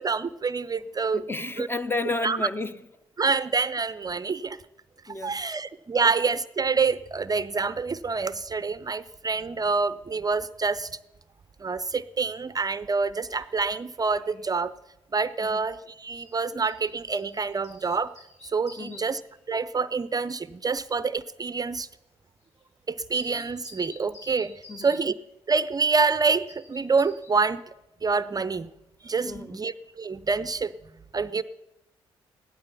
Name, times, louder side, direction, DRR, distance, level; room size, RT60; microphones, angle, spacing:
voice 1, 0.0-1.2 1.6-1.7 2.2-2.4 3.2-4.6 5.2-10.9 11.6-14.7 15.1-18.1 18.5-19.2 19.5-21.9 22.9-25.1 25.5-27.6 28.0-28.7 29.0-30.7 31.1-31.4, right 4 dB, 30° right, 0.6 m, -27 dB
voice 2, 1.1-2.9 5.1-5.6 6.0-6.1 15.5-15.7 18.8-19.1 24.7-24.9 29.3-29.6, left 3 dB, 15° left, 0.8 m, -32 dB
sound 1, 13.3-13.7 13.9-14.5 16.2-19.4 22.6-22.7 23.1-25.0 26.0-27.3, left 3 dB, 60° left, 4.2 m, -50 dB
16.5 x 12.0 x 5.7 m
hypercardioid pair, 45°, 14 cm